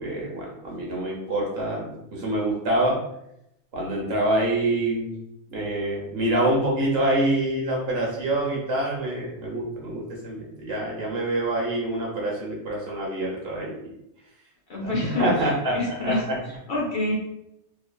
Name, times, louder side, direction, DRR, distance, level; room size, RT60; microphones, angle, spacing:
voice 1, 0.0-3.0 3.7-5.1 5.5-13.7 14.8-15.8 16.0-16.4, right 1 dB, 65° right, -3 dB, 1.0 m, -26 dB
voice 2, 14.7-17.1, left 2 dB, 55° left, -3 dB, 0.9 m, -28 dB
3.0 x 2.3 x 2.2 m, 0.80 s
omnidirectional pair, 1.2 m